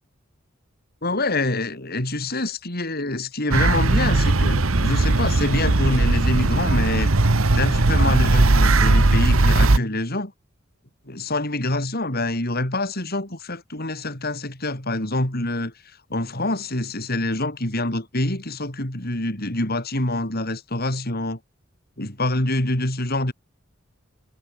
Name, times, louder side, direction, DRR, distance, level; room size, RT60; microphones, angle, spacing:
voice 1, 1.0-7.1 7.5-10.3 11.1-21.4 22.0-23.3, left 2 dB, 50° left, 5.1 m, -26 dB
sound 1, 3.5-9.8, right 2 dB, 85° right, 1.3 m, -18 dB
head